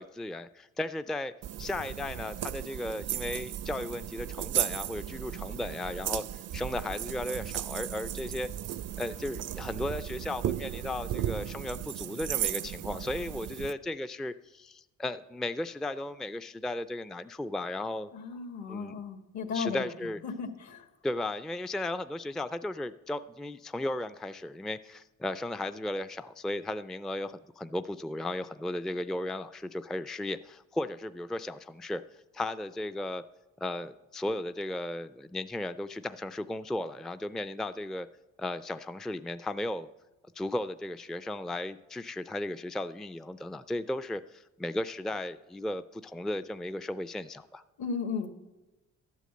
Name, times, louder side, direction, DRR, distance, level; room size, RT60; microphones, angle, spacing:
voice 1, 0.0-1.3 1.6-6.2 6.5-18.1 18.7-19.0 19.5-20.2 21.0-32.0 32.3-33.2 33.6-38.1 38.4-39.9 40.4-47.6, left 1 dB, ahead, 12 dB, 0.3 m, -35 dB
sound 1, 1.4-13.7, right 11 dB, 55° right, 0.5 m, -35 dB
voice 2, 18.1-19.8 20.2-20.8 47.8-48.3, left 5 dB, 70° left, 7 dB, 1.7 m, -35 dB
12.0 x 8.3 x 7.7 m, 1.0 s
cardioid pair, 90°, 30 cm